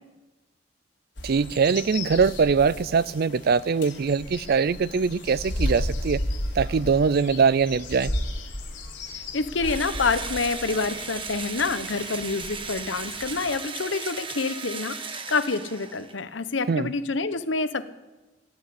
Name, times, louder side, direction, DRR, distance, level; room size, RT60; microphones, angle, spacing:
sound 1, 1.2-13.6, left 1 dB, 70° left, 3.1 m, -34 dB
voice 1, 1.2-6.2 6.6-8.1 16.7-16.9, right 5 dB, 55° right, 20 dB, 0.4 m, -22 dB
voice 2, 9.3-17.9, left 4 dB, 85° left, 12 dB, 1.0 m, -27 dB
Engine / Drill, 9.6-16.2, right 5 dB, 30° right, 1.2 m, -36 dB
17.5 x 9.9 x 8.4 m, 1.1 s
head